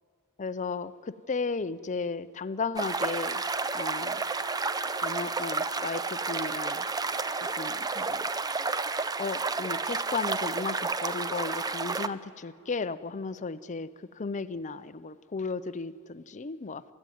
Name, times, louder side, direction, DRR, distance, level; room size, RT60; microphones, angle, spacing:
voice 1, 0.4-3.4 3.7-4.2 5.0-6.9 7.4-8.2 8.5-8.6 9.2-16.8, left 4 dB, 35° left, 14 dB, 0.5 m, -35 dB
Wind instrument woodwind instrument, 2.7-7.9, left 2 dB, 80° left, 0.7 m, -50 dB
sound 1, 2.8-12.1, right 4 dB, 20° right, 0.5 m, -31 dB
28.0 x 14.5 x 9.3 m, 2.3 s
head